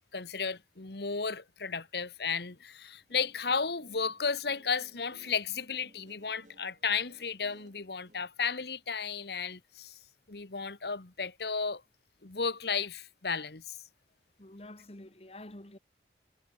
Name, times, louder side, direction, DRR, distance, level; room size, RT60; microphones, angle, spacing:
voice 1, 0.1-10.0 10.3-11.8 12.2-13.8, left 5 dB, 65° left, 1.4 m, -34 dB
Guitar, 2.9-8.2, right 1 dB, 45° right, 4.4 m, -61 dB
voice 2, 14.4-15.8, left 1 dB, 35° left, 1.8 m, -48 dB
head